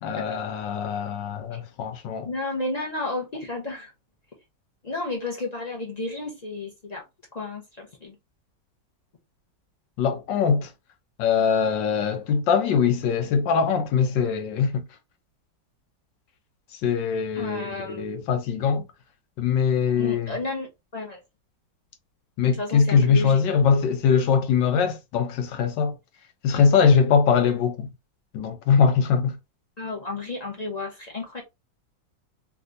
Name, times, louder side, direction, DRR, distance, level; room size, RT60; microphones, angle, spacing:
voice 1, 0.0-2.3 10.0-10.7 11.2-14.8 16.8-18.8 19.4-20.3 22.4-25.9 26.4-27.9 28.3-29.4, left 6 dB, 80° left, 1.4 m, -22 dB
voice 2, 2.2-3.9 4.8-7.0 7.3-8.1 17.3-18.2 20.0-21.2 22.6-23.9 29.8-31.4, left 2 dB, 45° left, 0.5 m, -32 dB
3.3 x 2.5 x 2.5 m
omnidirectional pair, 2.0 m